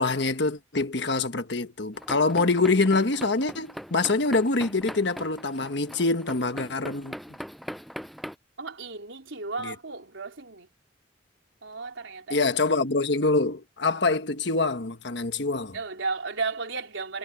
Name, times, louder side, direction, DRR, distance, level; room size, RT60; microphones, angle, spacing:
voice 1, 0.0-7.1 9.6-9.7 12.3-15.8, left 3 dB, 65° left, 1.4 m, -25 dB
sound 1, 1.9-8.4, equal, ahead, 7.7 m, -41 dB
voice 2, 8.6-10.7 11.6-12.5 15.7-17.2, right 4 dB, 90° right, 3.8 m, -34 dB
head